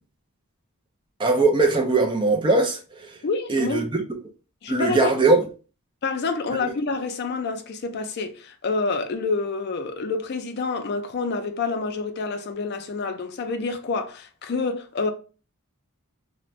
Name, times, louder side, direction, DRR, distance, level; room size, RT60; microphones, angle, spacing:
voice 1, 1.2-2.8 3.5-4.0 4.7-5.4, right 3 dB, 20° right, 0.4 m, -20 dB
voice 2, 3.2-3.8 4.6-5.3 6.0-15.1, left 4 dB, 45° left, 0.4 m, -28 dB
2.5 x 2.1 x 3.0 m
head